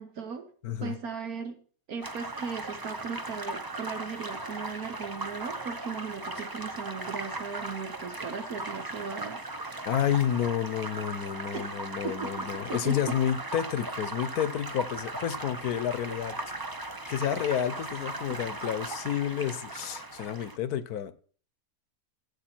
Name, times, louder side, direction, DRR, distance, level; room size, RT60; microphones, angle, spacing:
voice 1, 0.0-0.5 0.8-1.6 1.9-9.5 11.5-11.7 12.0-13.2, right 6 dB, 70° right, 1.5 m, -37 dB
voice 2, 0.6-1.0 9.9-16.4 17.1-21.1, left 10 dB, 75° left, 1.3 m, -30 dB
sound 1, 2.0-20.6, right 2 dB, 20° right, 0.6 m, -38 dB
13.5 x 8.3 x 4.4 m
omnidirectional pair, 1.7 m